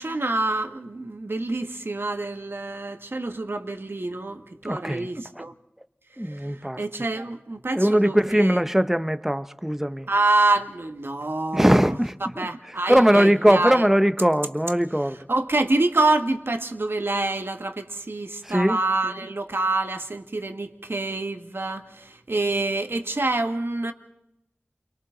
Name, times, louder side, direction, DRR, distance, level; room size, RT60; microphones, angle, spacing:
voice 1, 0.0-5.5 6.3-6.5 6.8-8.6 10.1-13.8 15.3-23.9, right 2 dB, 70° right, 1.6 m, -26 dB
voice 2, 4.6-5.1 5.4-5.5 6.2-6.8 7.7-10.1 11.5-12.5 12.9-15.2 18.4-18.8, equal, 10° right, 0.8 m, -20 dB
29.0 x 23.5 x 3.9 m
wide cardioid pair, 40°, 4 cm